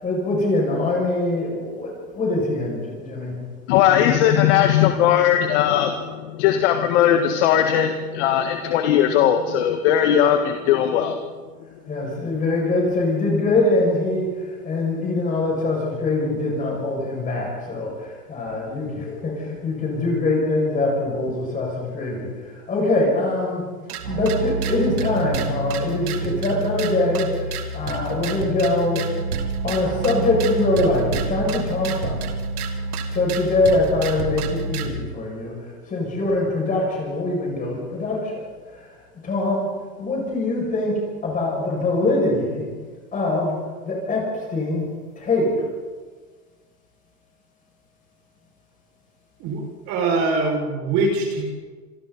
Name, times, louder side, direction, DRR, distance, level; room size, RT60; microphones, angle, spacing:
voice 1, 0.0-3.3 11.9-14.3 14.6-22.3 22.7-23.7 24.1-29.1 29.6-32.2 33.1-35.6 35.9-38.4 39.2-39.7 40.0-42.6 43.1-43.5 43.8-44.9 45.2-45.6, left 2 dB, 15° left, -2 dB, 6.6 m, -23 dB
voice 2, 3.7-11.2, left 10 dB, 50° left, 5 dB, 1.8 m, -18 dB
sound 1, 23.9-34.9, right 4 dB, 75° right, 2.5 m, -28 dB
voice 3, 49.4-51.5, right 3 dB, 40° right, 0 dB, 6.1 m, -23 dB
27.0 x 23.0 x 4.2 m, 1.4 s
hypercardioid pair, 145°, 46 cm